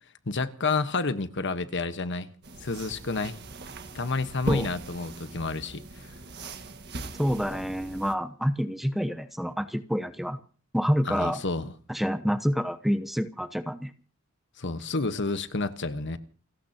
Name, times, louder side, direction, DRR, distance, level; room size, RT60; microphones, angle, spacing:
voice 1, 0.3-2.3 2.6-3.4 3.9-6.1 11.0-11.7 14.6-16.2, left 3 dB, 60° left, 1.2 m, -30 dB
sound 1, 2.4-8.1, right 1 dB, 55° right, 1.6 m, -39 dB
voice 2, 7.2-10.4 10.7-11.4 11.9-13.9, equal, ahead, 0.8 m, -27 dB
29.5 x 15.5 x 2.9 m
head